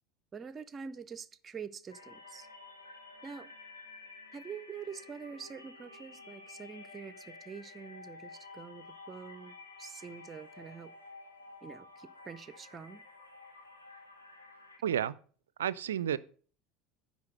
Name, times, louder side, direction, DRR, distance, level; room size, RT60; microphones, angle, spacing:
voice 1, 0.3-2.5 3.2-3.5 4.3-10.9 11.6-13.0, right 6 dB, 30° right, 0.6 m, -46 dB
sound 1, 1.9-14.8, left 3 dB, 85° left, 1.5 m, -52 dB
voice 2, 14.8-15.2 15.6-16.2, right 9 dB, 75° right, 0.4 m, -31 dB
9.6 x 4.0 x 6.4 m
figure-of-eight pair, 75°, 0 cm